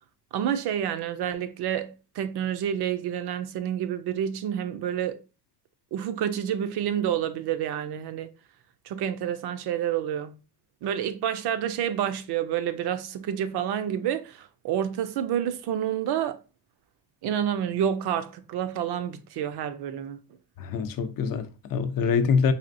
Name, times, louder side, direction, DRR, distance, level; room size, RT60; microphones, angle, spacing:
voice 1, 0.3-5.2 5.9-8.3 8.8-10.4 10.8-16.4 17.2-20.2, right 9 dB, 75° right, 0.6 m, -29 dB
voice 2, 20.6-22.5, left 6 dB, 60° left, 0.5 m, -25 dB
4.2 x 3.3 x 2.5 m
cardioid pair, 160°, 40 cm